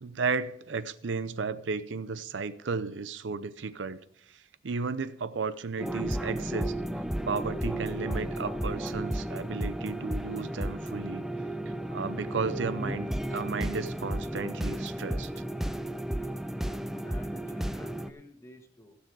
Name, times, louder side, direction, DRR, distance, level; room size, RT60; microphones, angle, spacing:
voice 1, 0.0-4.0 4.3-11.2 11.7-15.3, right 4 dB, 80° right, 0.6 m, -34 dB
sound 1, 5.8-18.1, right 1 dB, ahead, 0.4 m, -33 dB
voice 2, 17.0-19.0, left 1 dB, 15° left, 1.4 m, -51 dB
16.0 x 6.9 x 4.7 m
head